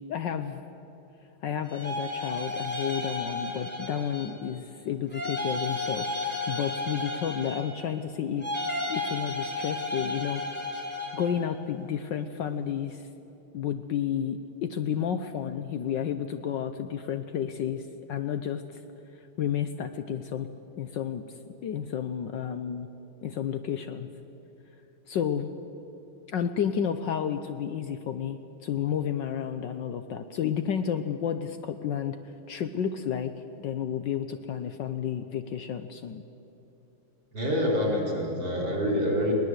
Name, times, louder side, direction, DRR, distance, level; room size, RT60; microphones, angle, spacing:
voice 1, 0.1-0.6 1.4-8.4 8.9-10.4 11.1-13.0 13.5-17.8 18.1-18.8 19.4-20.5 20.8-21.2 21.6-22.9 23.2-24.1 25.1-25.5 26.3-32.2 32.5-33.3 33.6-36.2, left 8 dB, 65° left, 9 dB, 1.3 m, -31 dB
sound 1, 1.6-4.5 5.1-7.9 8.4-11.4, left 2 dB, 5° left, 3.7 m, -33 dB
voice 2, 37.3-39.3, equal, 60° right, -1 dB, 5.6 m, -26 dB
21.5 x 19.0 x 8.0 m, 3.0 s
omnidirectional pair, 2.4 m